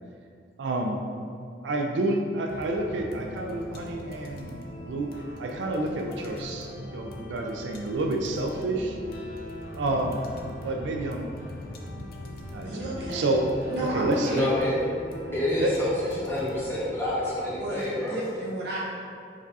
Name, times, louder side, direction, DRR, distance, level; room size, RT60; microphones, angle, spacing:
voice 1, 0.6-1.0 1.6-5.1 5.4-9.0 9.8-10.2 10.6-11.3 11.9-12.1 12.5-13.4 13.8-14.5 15.2-15.7, right 2 dB, 80° right, 2 dB, 0.4 m, -29 dB
sound 1, 2.5-17.8, left 1 dB, 55° left, 0.5 m, -40 dB
voice 2, 12.7-13.3 13.7-14.5 17.4-18.8, equal, 65° right, -5 dB, 0.9 m, -32 dB
voice 3, 14.2-14.7 15.3-15.9 16.2-18.2, left 1 dB, 15° left, -8 dB, 1.0 m, -28 dB
4.8 x 4.0 x 2.3 m, 2.4 s
head